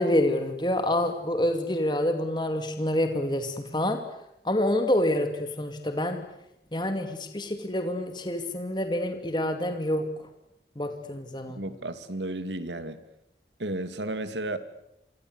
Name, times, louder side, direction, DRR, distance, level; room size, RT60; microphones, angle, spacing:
voice 1, 0.0-4.0 4.4-6.2 6.7-10.1 10.8-11.6, left 1 dB, 25° left, 6 dB, 2.4 m, -27 dB
voice 2, 11.5-13.0 13.6-14.6, right 1 dB, 85° right, 11 dB, 2.6 m, -33 dB
29.0 x 24.5 x 8.1 m, 0.82 s
head